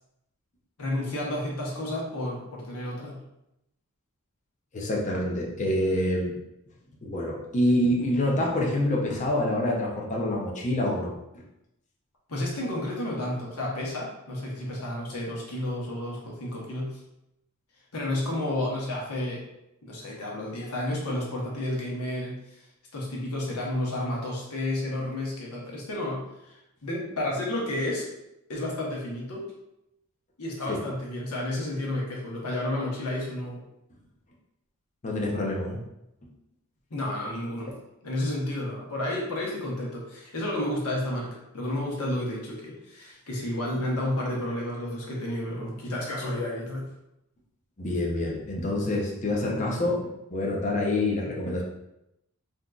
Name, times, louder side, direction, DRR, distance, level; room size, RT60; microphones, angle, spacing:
voice 1, 0.8-3.2 12.3-17.0 17.9-19.4 19.8-22.6 22.9-28.1 28.5-29.5 30.4-33.6 36.9-37.7 38.0-46.9, left 1 dB, 80° left, -3 dB, 1.0 m, -31 dB
voice 2, 4.7-6.3 7.0-11.1 30.7-30.8 35.0-35.8 47.8-50.0 50.3-51.6, left 1 dB, 35° left, -2 dB, 0.6 m, -26 dB
3.7 x 2.6 x 2.3 m, 0.85 s
head